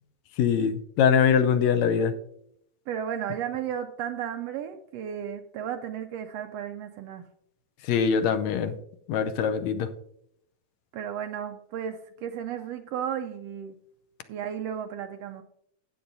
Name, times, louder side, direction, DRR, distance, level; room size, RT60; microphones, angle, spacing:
voice 1, 0.4-2.1 7.8-8.7 9.1-9.9, left 7 dB, 75° left, 8 dB, 1.9 m, -23 dB
voice 2, 2.9-7.2 10.9-13.8 14.3-15.4, right 9 dB, 80° right, 7 dB, 1.5 m, -34 dB
13.0 x 8.7 x 2.7 m, 0.74 s
omnidirectional pair, 3.3 m